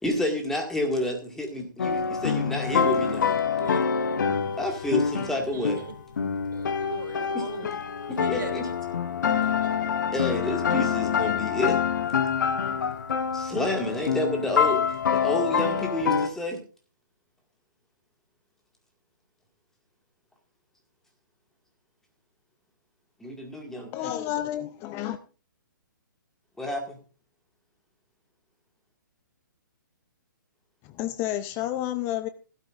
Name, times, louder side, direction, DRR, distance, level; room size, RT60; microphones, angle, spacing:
voice 1, 0.0-3.4 4.6-5.8 7.3-7.4 8.1-8.6 10.1-11.8 13.3-14.8 15.1-16.6 23.2-24.1 26.6-27.0, left 1 dB, 5° left, 2.0 m, -29 dB
sound 1, 1.8-16.3, left 6 dB, 65° left, 1.2 m, -26 dB
voice 2, 5.3-6.0 6.5-7.7 8.2-8.8 9.2-9.8, right 5 dB, 70° right, 2.2 m, -40 dB
voice 3, 23.9-25.2 30.8-32.3, left 13 dB, 25° left, 0.5 m, -30 dB
15.5 x 12.5 x 2.5 m
figure-of-eight pair, 130°, 11 cm